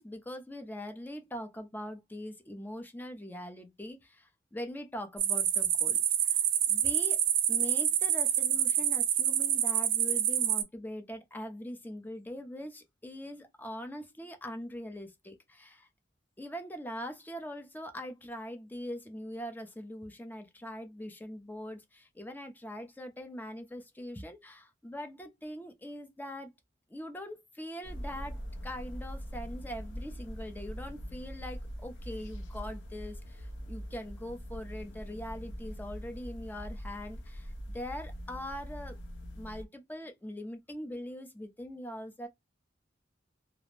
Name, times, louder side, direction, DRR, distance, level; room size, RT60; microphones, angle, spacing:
voice 1, 0.0-7.2 7.5-15.9 16.4-26.5 26.9-39.0 39.3-42.3, equal, 10° left, 0.5 m, -42 dB
sound 1, 5.2-10.6, right 10 dB, 70° right, 0.5 m, -27 dB
sound 2, 27.8-39.6, equal, 70° left, 0.6 m, -42 dB
2.4 x 2.0 x 3.1 m
head